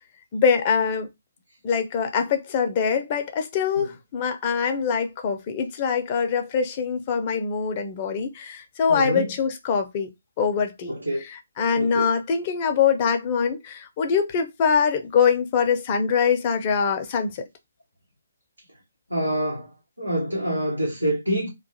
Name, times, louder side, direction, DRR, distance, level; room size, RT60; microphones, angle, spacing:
voice 1, 0.3-1.1 1.6-10.1 10.4-10.9 11.2-17.4, left 6 dB, 30° left, 0.5 m, -23 dB
voice 2, 8.9-9.3 10.9-11.2 11.8-12.1 19.1-19.7 20.0-21.5, equal, 90° right, 1.0 m, -26 dB
2.4 x 2.3 x 2.7 m
figure-of-eight pair, 140°, 0 cm